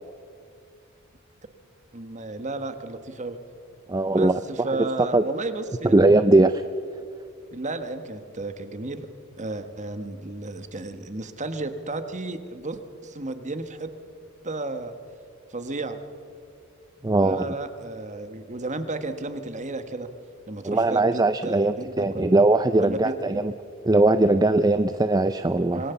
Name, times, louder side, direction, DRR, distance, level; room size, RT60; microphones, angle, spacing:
voice 1, 1.9-3.4 4.1-5.9 7.5-9.1 9.4-13.9 14.4-14.9 15.5-16.0 17.2-20.1 20.5-22.3 22.7-23.4 25.7-25.9, right 2 dB, 35° right, 9 dB, 1.4 m, -33 dB
voice 2, 3.9-4.4 4.7-5.2 5.9-6.6 17.0-17.5 20.6-23.5 23.8-25.8, right 2 dB, 20° right, 11 dB, 0.5 m, -20 dB
26.0 x 20.0 x 7.0 m, 2.4 s
head